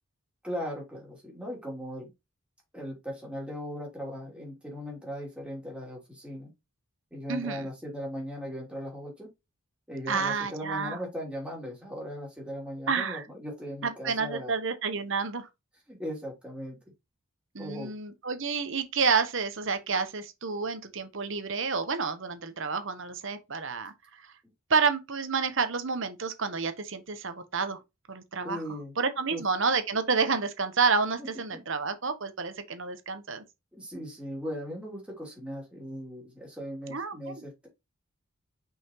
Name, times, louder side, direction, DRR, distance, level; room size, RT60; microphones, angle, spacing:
voice 1, 0.4-2.1 2.7-6.5 7.1-9.3 9.9-14.5 15.9-16.8 17.6-17.9 28.4-28.9 29.3-29.4 31.2-31.3 33.7-37.7, equal, 5° right, 2.9 m, -38 dB
voice 2, 7.3-7.7 10.1-11.0 12.9-13.2 13.8-15.5 17.5-23.9 24.7-27.8 28.1-28.6 29.0-33.4 36.9-37.4, right 5 dB, 55° right, 1.0 m, -29 dB
5.9 x 5.6 x 3.0 m
head